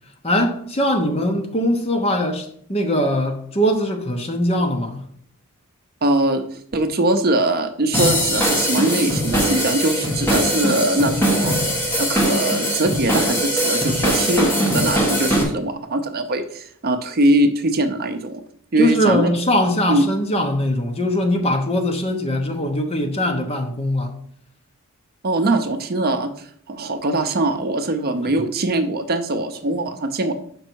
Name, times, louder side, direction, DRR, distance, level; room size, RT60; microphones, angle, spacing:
voice 1, 0.2-5.0 18.8-24.1 28.2-28.3, equal, 30° left, 0.9 m, -21 dB
voice 2, 6.0-6.4 6.7-11.6 12.0-18.4 18.7-19.3 19.9-20.0 25.2-30.3, right 2 dB, 45° right, 0.6 m, -21 dB
sound 1, 7.9-15.4, equal, 10° left, 1.6 m, -21 dB
6.5 x 5.3 x 4.6 m
head